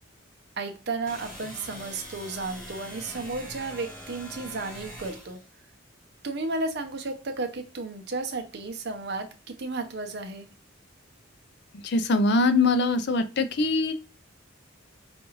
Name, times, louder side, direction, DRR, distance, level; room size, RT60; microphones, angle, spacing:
voice 1, 0.6-5.4 6.2-10.5, right 3 dB, 55° right, 6 dB, 0.7 m, -33 dB
sound 1, 1.1-5.5, equal, 5° left, 1.4 m, -43 dB
voice 2, 11.8-13.9, left 3 dB, 55° left, 11 dB, 0.5 m, -22 dB
5.2 x 2.4 x 3.1 m, 0.31 s
head